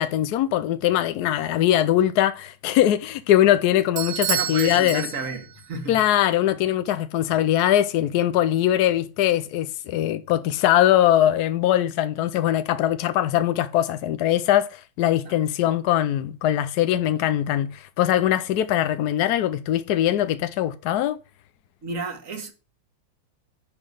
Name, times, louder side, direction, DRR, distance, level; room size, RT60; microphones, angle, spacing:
voice 1, 0.0-5.0 5.9-21.2, left 12 dB, 80° left, 0.9 m, -21 dB
Bell / Doorbell, 4.0-5.7, right 12 dB, 75° right, 1.5 m, -29 dB
voice 2, 4.3-6.0 15.3-15.4 21.8-22.5, right 3 dB, 40° right, 1.8 m, -32 dB
10.5 x 3.9 x 6.5 m
omnidirectional pair, 2.3 m